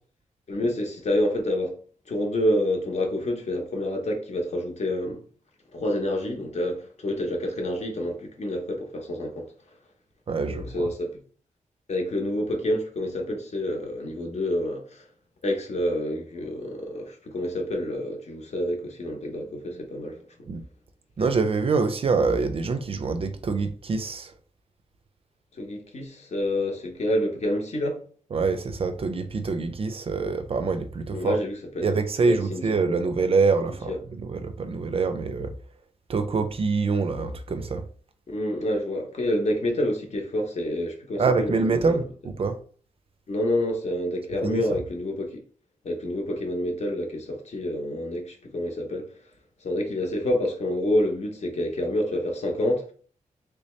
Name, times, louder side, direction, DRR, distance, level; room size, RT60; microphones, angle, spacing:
voice 1, 0.5-1.7 2.1-5.2 5.7-9.5 10.5-11.1 11.9-15.0 15.4-20.2 25.6-28.0 31.1-31.9 32.2-32.6 33.9-34.0 38.3-42.0 43.3-45.4 45.8-49.1 49.6-52.9, left 1 dB, 55° left, 0.9 m, -28 dB
voice 2, 10.3-10.9 20.5-20.6 21.2-24.3 28.3-31.4 31.8-35.5 36.1-37.8 41.2-42.6 44.4-44.6, right 4 dB, 45° right, 0.4 m, -25 dB
3.3 x 2.8 x 3.1 m
wide cardioid pair, 155°, 14 cm